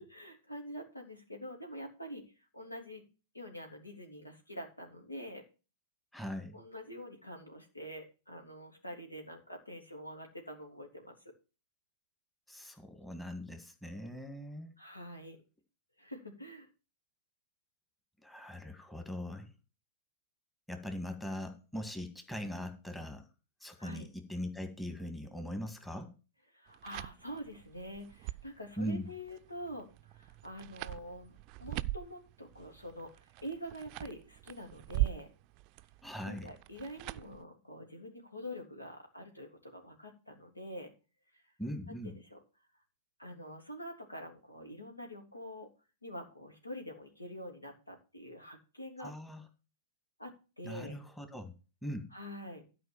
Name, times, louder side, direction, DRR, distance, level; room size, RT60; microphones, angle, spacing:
voice 1, 0.0-2.2 2.5-3.0 3.3-5.4 6.5-11.1 14.8-15.4 16.0-16.7 23.8-24.1 26.5-33.1 33.4-35.3 36.2-40.9 41.9-42.4 43.2-45.7 46.0-49.1 50.2-51.0 52.1-52.6, equal, 90° left, 3 dB, 3.0 m, -46 dB
voice 2, 6.1-6.6 12.5-14.7 18.2-19.5 20.7-23.3 23.6-26.1 28.8-29.1 36.0-36.5 41.6-42.1 49.0-49.5 50.6-51.5 51.8-52.1, equal, 5° left, 6 dB, 1.9 m, -41 dB
sound 1, 26.7-37.4, right 18 dB, 40° right, 0.5 m, -41 dB
12.5 x 4.9 x 7.1 m, 0.32 s
figure-of-eight pair, 100°, 0 cm